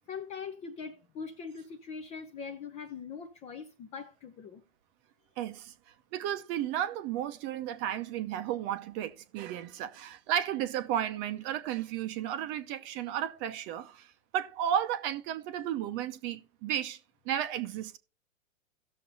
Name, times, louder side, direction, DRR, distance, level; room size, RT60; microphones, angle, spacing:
voice 1, 0.1-4.6, left 6 dB, 15° left, 0.5 m, -42 dB
voice 2, 5.4-5.7 6.1-14.1 14.3-17.0 17.3-18.0, right 10 dB, 30° right, 0.7 m, -33 dB
17.0 x 6.6 x 2.7 m
hypercardioid pair, 120°, 40 cm